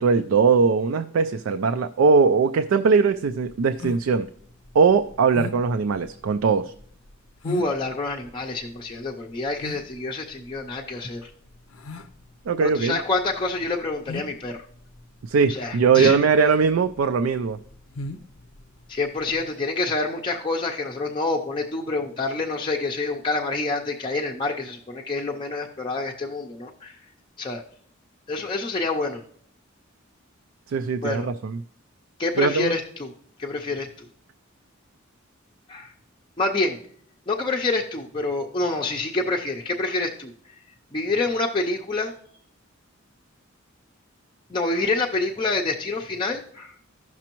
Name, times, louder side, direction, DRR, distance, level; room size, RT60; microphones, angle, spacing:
voice 1, 0.0-4.3 4.7-6.7 12.5-13.0 15.2-17.6 30.7-31.6 32.4-32.8, right 5 dB, 70° right, 8 dB, 0.4 m, -20 dB
sound 1, 3.2-19.5, left 3 dB, 80° left, 0.6 m, -39 dB
voice 2, 7.4-11.3 12.6-14.6 15.5-16.2 18.9-26.9 27.4-27.6 28.3-29.2 31.0-31.3 32.2-33.1 33.4-34.1 35.7-35.9 36.4-36.8 37.3-40.3 40.9-42.1 44.5-46.7, left 3 dB, 25° left, -1 dB, 0.5 m, -27 dB
15.0 x 6.0 x 3.0 m, 0.62 s
head